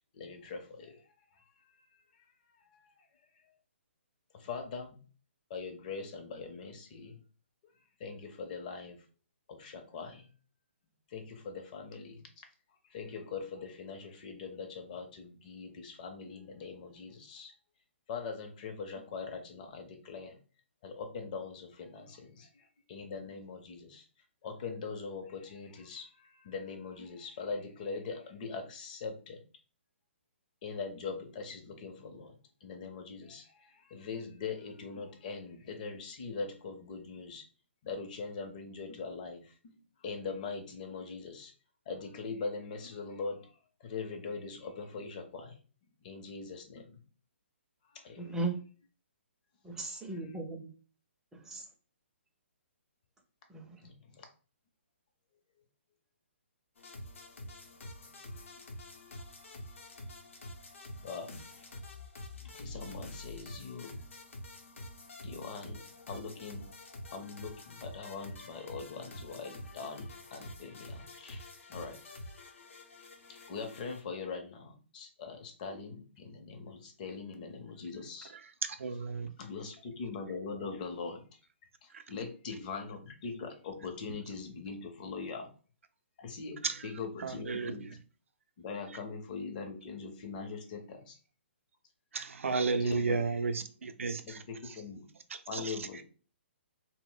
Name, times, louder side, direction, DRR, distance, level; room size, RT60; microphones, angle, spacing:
voice 1, 0.1-1.0 2.8-2.9 4.3-5.0 5.5-7.2 8.0-9.0 9.5-10.3 11.1-12.2 12.9-17.5 18.1-20.4 20.8-24.0 24.4-29.4 30.6-32.3 32.6-37.4 37.8-39.7 40.0-41.5 41.9-43.5 43.8-45.6 46.0-46.9 47.9-48.4 53.8-54.3 61.0-61.3 61.6-61.7 62.4-64.0 65.2-66.6 67.1-72.0 73.5-78.3 79.4-81.2 81.8-85.5 86.2-86.6 86.8-87.9 88.6-91.2 92.8-93.2 93.6-93.7 94.2-95.1 95.5-96.0, left 4 dB, 40° left, 0.6 m, -42 dB
voice 2, 48.2-48.6 49.6-50.7 51.3-51.7 53.5-53.8, right 3 dB, 5° right, 0.4 m, -37 dB
sound 1, 56.8-74.0, left 1 dB, 80° left, 0.7 m, -47 dB
voice 3, 78.6-79.3 81.9-82.0 86.6-86.8 87.2-87.9 92.1-94.4 95.3-95.8, right 4 dB, 85° right, 0.4 m, -33 dB
2.1 x 2.0 x 3.8 m
hypercardioid pair, 150°, 7 cm